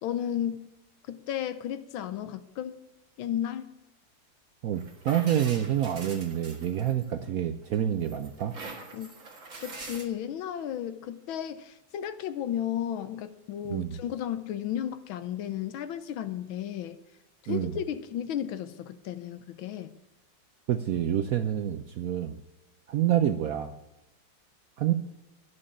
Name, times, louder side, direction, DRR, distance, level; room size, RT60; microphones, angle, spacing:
voice 1, 0.0-0.7 1.1-2.7 3.2-3.7 8.9-9.1 9.6-17.0 17.5-19.9, left 10 dB, 80° left, 12 dB, 1.5 m, -33 dB
voice 2, 4.6-8.5 13.7-13.9 17.5-17.7 20.7-22.4 22.9-23.7 24.8-24.9, right 10 dB, 80° right, 9 dB, 0.8 m, -27 dB
sound 1, 4.7-7.3 7.7-10.1, right 3 dB, 40° right, 2.0 m, -43 dB
11.0 x 6.4 x 8.5 m, 0.96 s
omnidirectional pair, 2.2 m